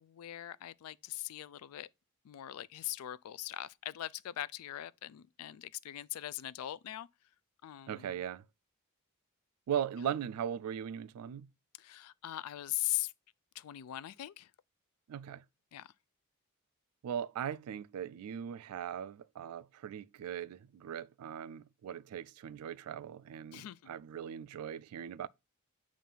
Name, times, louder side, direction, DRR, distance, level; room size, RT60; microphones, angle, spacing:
voice 1, 0.0-1.9 2.2-7.1 7.6-8.2 11.8-13.1 13.5-14.5 15.7-15.9 23.5-23.9, left 14 dB, 75° left, 0.3 m, -40 dB
voice 2, 7.9-8.4 9.7-11.5 15.1-15.4 17.0-25.3, right 9 dB, 80° right, 0.3 m, -39 dB
7.2 x 2.5 x 5.4 m
head